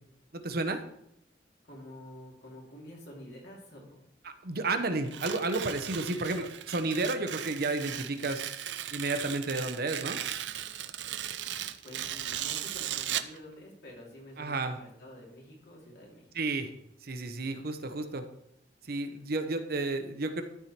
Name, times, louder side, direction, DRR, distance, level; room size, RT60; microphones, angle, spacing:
voice 1, 0.3-0.8 4.2-8.4 8.9-10.2 14.4-14.8 16.3-16.7 17.0-18.2 18.9-20.4, right 2 dB, 60° right, 8 dB, 0.9 m, -32 dB
voice 2, 1.6-4.0 11.8-16.3, left 1 dB, 65° left, -2 dB, 3.1 m, -48 dB
Tearing, 5.0-13.4, right 11 dB, 80° right, 0.5 m, -37 dB
13.0 x 4.9 x 4.3 m, 0.77 s
head